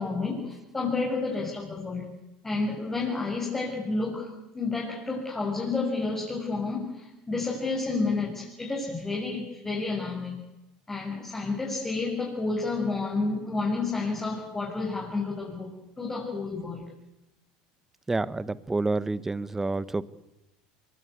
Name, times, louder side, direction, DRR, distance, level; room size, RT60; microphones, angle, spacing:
voice 1, 0.0-2.1 2.4-10.4 10.9-16.9, left 3 dB, 15° left, -3 dB, 7.2 m, -30 dB
voice 2, 18.1-20.0, right 3 dB, 10° right, 18 dB, 1.0 m, -28 dB
25.5 x 23.5 x 8.4 m, 0.91 s
supercardioid pair, 120°, 3 cm